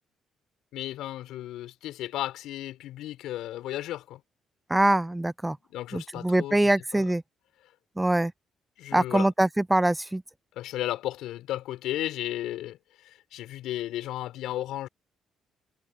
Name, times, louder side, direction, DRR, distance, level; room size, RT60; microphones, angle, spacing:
voice 1, 0.7-4.2 5.7-7.0 8.8-9.3 10.5-14.9, left 14 dB, 90° left, 6.2 m, -34 dB
voice 2, 4.7-5.6 5.9-7.2 8.0-8.3 8.9-10.2, right 1 dB, 10° right, 0.4 m, -23 dB
cardioid pair, 90°, 0 cm